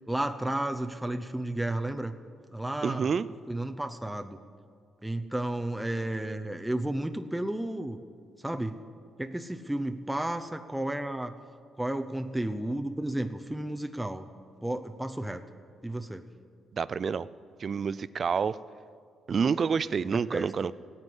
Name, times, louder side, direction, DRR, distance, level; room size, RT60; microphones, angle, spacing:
voice 1, 0.1-2.2 2.5-3.1 3.5-4.4 5.0-8.0 8.4-8.8 9.2-11.4 11.8-14.3 14.6-15.4 15.8-16.2 20.1-20.5, right 1 dB, 5° right, 6 dB, 0.7 m, -32 dB
voice 2, 2.8-3.3 16.7-17.3 17.6-18.6 19.3-20.7, right 6 dB, 45° right, 17 dB, 0.4 m, -28 dB
17.0 x 9.8 x 7.9 m, 2.2 s
cardioid pair, 90°, 0 cm